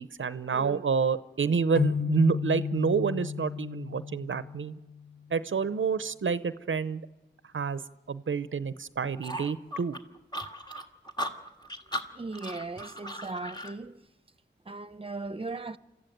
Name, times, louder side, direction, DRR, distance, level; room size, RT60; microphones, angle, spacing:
voice 1, 0.0-4.8 5.3-7.0 7.5-7.8 8.1-10.0, right 5 dB, 85° right, 0.6 m, -28 dB
sound 1, 1.8-5.3, left 6 dB, 45° left, 0.7 m, -33 dB
sound 2, 9.2-13.7, equal, 20° left, 1.7 m, -37 dB
voice 2, 12.1-14.0 14.7-15.8, right 3 dB, 30° right, 0.8 m, -37 dB
26.5 x 14.0 x 9.2 m
wide cardioid pair, 40°, 20 cm